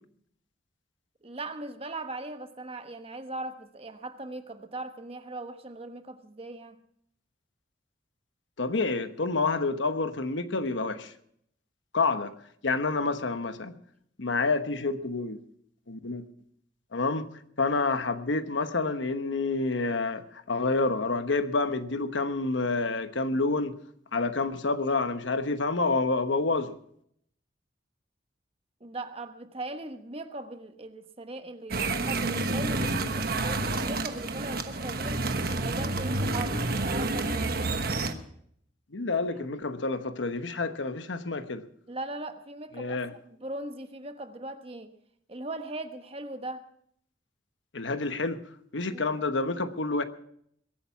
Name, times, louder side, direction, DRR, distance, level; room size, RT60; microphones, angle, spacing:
voice 1, 1.2-6.8 28.8-35.3 35.6-37.6 41.9-44.9 45.3-46.7 48.9-49.0, right 2 dB, 30° right, 1.1 m, -39 dB
voice 2, 8.6-11.1 11.9-12.3 12.6-13.7 14.2-15.4 15.9-16.2 16.9-17.3 17.6-23.8 24.1-26.7 38.9-41.6 42.7-43.1 47.7-48.4 48.7-50.0, left 3 dB, 90° left, 1.1 m, -28 dB
sound 1, 31.7-38.1, right 2 dB, 55° right, 1.2 m, -29 dB
22.0 x 9.0 x 5.9 m
head